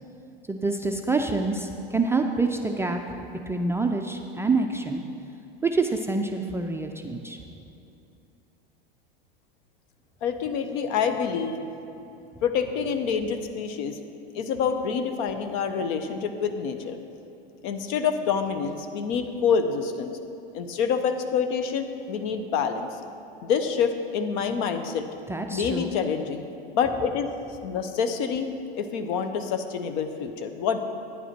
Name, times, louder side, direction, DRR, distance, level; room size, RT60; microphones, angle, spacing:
voice 1, 0.5-3.0 3.5-5.0 5.6-7.4 25.3-25.9, right 3 dB, 10° right, 3 dB, 0.4 m, -26 dB
voice 2, 10.2-11.6 12.4-14.0 14.3-17.0 17.6-20.2 20.5-22.9 23.4-25.0 25.5-26.4 26.7-27.3 27.6-28.5 28.8-30.8, left 6 dB, 55° left, 8 dB, 0.9 m, -27 dB
9.7 x 9.0 x 4.4 m, 2.8 s
hypercardioid pair, 100°, 29 cm